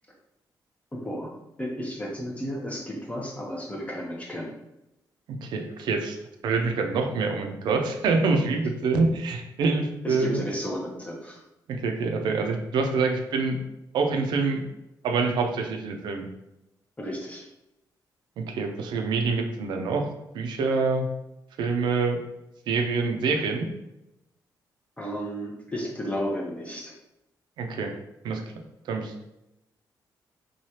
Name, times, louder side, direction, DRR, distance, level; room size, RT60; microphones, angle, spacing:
voice 1, 0.9-1.3 1.6-4.5 10.0-11.4 17.0-17.5 25.0-26.9, equal, 15° left, -2 dB, 0.7 m, -33 dB
voice 2, 5.4-6.2 6.4-10.5 11.7-13.6 13.9-14.6 15.0-16.3 18.4-20.1 20.3-21.1 21.6-22.2 22.7-23.7 27.6-27.9 28.2-28.4 28.9-29.2, right 4 dB, 85° right, 4 dB, 0.4 m, -26 dB
3.1 x 2.3 x 2.8 m, 0.88 s
cardioid pair, 85°, 8 cm